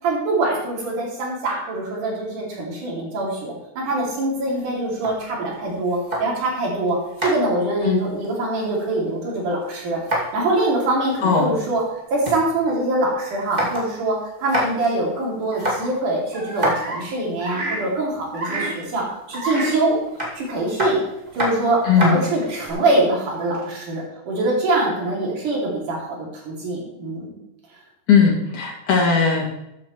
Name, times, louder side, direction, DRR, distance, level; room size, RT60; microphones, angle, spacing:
voice 1, 0.0-11.8 12.1-20.0 20.4-21.0 21.4-27.4, right 2 dB, 75° right, -3 dB, 4.3 m, -24 dB
sound 1, 4.3-6.6 6.9-9.1 9.4-10.5 10.8-10.9 11.1-12.4 12.8-12.9 13.3-14.0 14.3-14.9 15.4-17.4 18.4-18.9 20.1-22.7, equal, 15° right, 2.2 m, -28 dB
voice 2, 11.2-11.5 21.9-22.2 28.1-29.4, left 6 dB, 75° left, -3 dB, 3.7 m, -17 dB
sound 2, 13.9-14.0 15.5-17.0 17.4-18.7 19.3-19.7 20.1-20.2 21.3-21.4 22.3-23.7, right 2 dB, 30° right, 2.6 m, -30 dB
14.0 x 9.5 x 3.2 m, 0.86 s
omnidirectional pair, 3.6 m